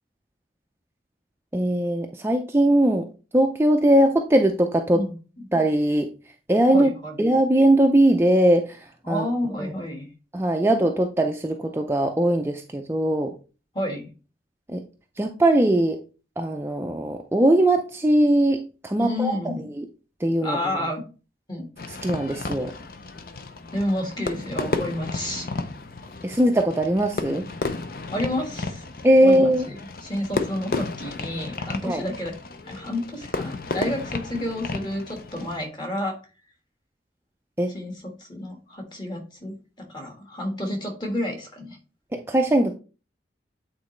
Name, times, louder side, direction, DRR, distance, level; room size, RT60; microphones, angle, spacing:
voice 1, 1.5-3.1 3.3-5.0 5.5-6.1 6.5-6.9 7.2-9.3 9.6-9.7 10.3-13.3 14.7-14.8 15.2-16.0 16.4-19.3 19.8-19.9 20.2-20.6 21.9-22.7 26.2-27.5 29.0-29.7 31.8-32.0 37.6-37.7 42.1-42.8, right 1 dB, 15° right, 3 dB, 0.4 m, -20 dB
voice 2, 4.9-5.5 6.7-7.1 9.0-10.1 13.7-14.1 19.0-19.7 20.4-21.0 21.5-21.7 23.7-25.5 28.1-28.9 29.2-32.3 32.6-36.2 37.7-41.8, left 1 dB, 25° left, 3 dB, 1.5 m, -30 dB
Fireworks, 21.8-35.7, left 3 dB, 55° left, 0.6 m, -33 dB
8.5 x 4.0 x 3.1 m, 0.34 s
head